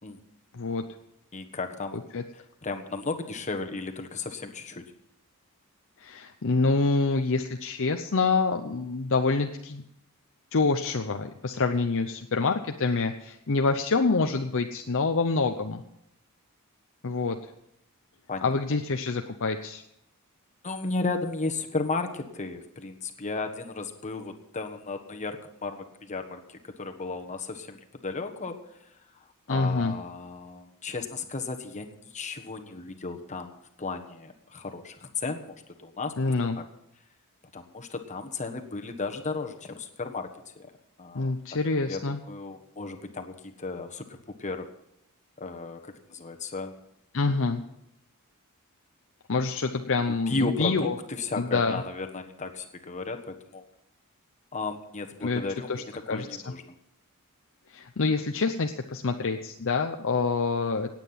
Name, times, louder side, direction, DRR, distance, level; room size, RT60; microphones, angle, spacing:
voice 1, 0.5-0.9 2.1-2.2 6.0-9.8 10.5-15.8 17.0-17.4 18.4-19.8 29.5-29.9 36.2-36.5 41.1-42.2 47.1-47.6 49.3-50.9 51.4-51.8 55.2-55.4 55.7-56.3 57.7-60.9, left 4 dB, 60° left, 5 dB, 0.8 m, -26 dB
voice 2, 1.3-2.0 2.3-4.8 18.3-18.8 20.6-36.6 37.5-40.7 41.0-41.3 41.8-44.7 45.4-46.7 50.3-53.6 54.5-56.6, left 3 dB, 35° left, 5 dB, 1.4 m, -35 dB
17.5 x 8.9 x 5.8 m, 0.79 s
head